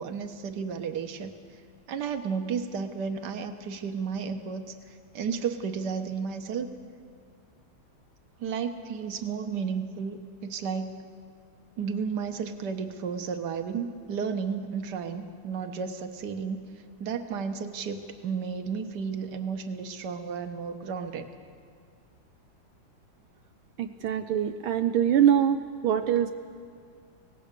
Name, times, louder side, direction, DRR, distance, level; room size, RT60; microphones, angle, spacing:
voice 1, 0.0-1.3 1.9-6.7 8.4-10.9 11.8-16.6 17.0-21.3, right 6 dB, 55° right, 7 dB, 1.7 m, -33 dB
voice 2, 23.8-26.3, right 9 dB, 80° right, 7 dB, 1.5 m, -24 dB
24.5 x 18.0 x 6.8 m, 2.3 s
omnidirectional pair, 2.3 m